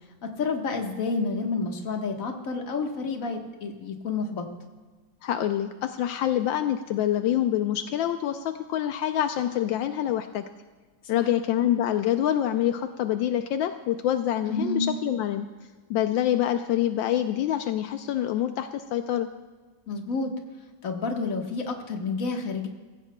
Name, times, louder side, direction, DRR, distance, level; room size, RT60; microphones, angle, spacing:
voice 1, 0.2-4.4 11.1-11.3 14.4-14.9 19.9-20.3 20.8-22.7, left 4 dB, 45° left, 3 dB, 1.7 m, -29 dB
voice 2, 5.2-10.4 11.1-15.5 15.9-19.3, left 11 dB, 80° left, 7 dB, 1.4 m, -26 dB
23.5 x 15.0 x 2.2 m, 1.4 s
omnidirectional pair, 2.1 m